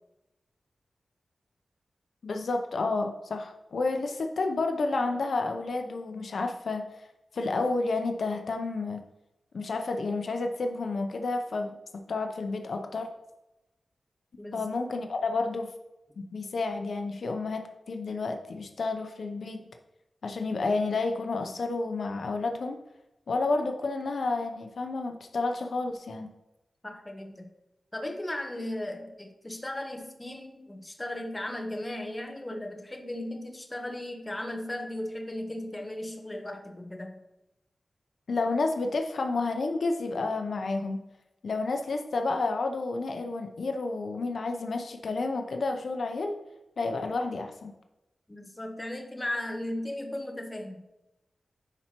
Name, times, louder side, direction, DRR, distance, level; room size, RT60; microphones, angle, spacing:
voice 1, 2.2-6.9 7.3-9.0 9.5-13.1 14.5-15.7 16.2-19.7 20.2-22.8 23.3-26.3 38.3-41.0 41.4-46.4 46.8-47.7, left 3 dB, 75° left, 5 dB, 0.6 m, -30 dB
voice 2, 26.8-27.5 27.9-37.2 48.3-50.8, left 1 dB, 20° left, 4 dB, 0.9 m, -36 dB
9.9 x 4.4 x 2.9 m, 0.95 s
wide cardioid pair, 100°, 0 cm